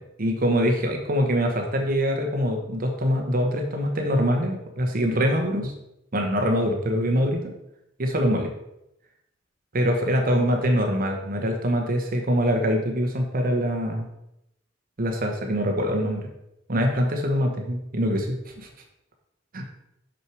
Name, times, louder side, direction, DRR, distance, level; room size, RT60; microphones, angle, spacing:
voice 1, 0.2-5.7 6.1-7.4 8.0-8.5 9.7-14.1 15.0-16.3 16.7-18.7 19.5-19.7, equal, 45° right, 3 dB, 1.0 m, -24 dB
6.4 x 6.1 x 4.7 m, 0.83 s
head